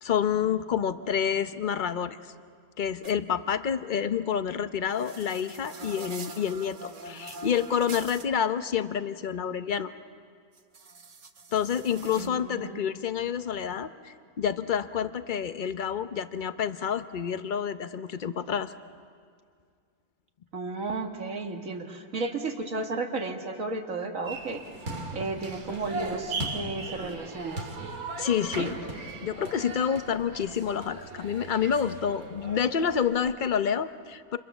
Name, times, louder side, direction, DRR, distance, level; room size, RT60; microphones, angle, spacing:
voice 1, 0.0-2.2 2.8-9.9 11.5-18.7 28.2-28.8 29.2-34.4, left 8 dB, 45° left, 11 dB, 0.7 m, -28 dB
sound 1, 3.0-3.1 4.9-8.2 10.5-12.3, right 3 dB, 40° right, 1.1 m, -44 dB
voice 2, 12.2-12.8 20.5-24.6 25.1-27.6 28.6-28.7, right 3 dB, 65° right, 4 dB, 2.1 m, -33 dB
sound 2, 24.3-33.3, right 2 dB, 85° right, 2.8 m, -38 dB
30.0 x 27.0 x 7.1 m, 2.2 s
omnidirectional pair, 1.5 m